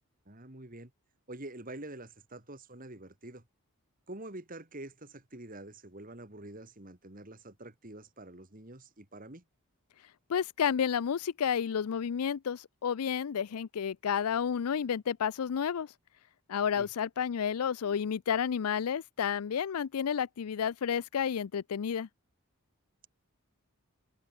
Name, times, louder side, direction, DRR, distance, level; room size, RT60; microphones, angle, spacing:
voice 1, 0.3-0.9 1.3-3.5 4.1-9.4 16.8-16.9, right 1 dB, 40° right, 2.4 m, -46 dB
voice 2, 10.3-15.9 16.5-22.1, left 7 dB, 80° left, 0.4 m, -31 dB
head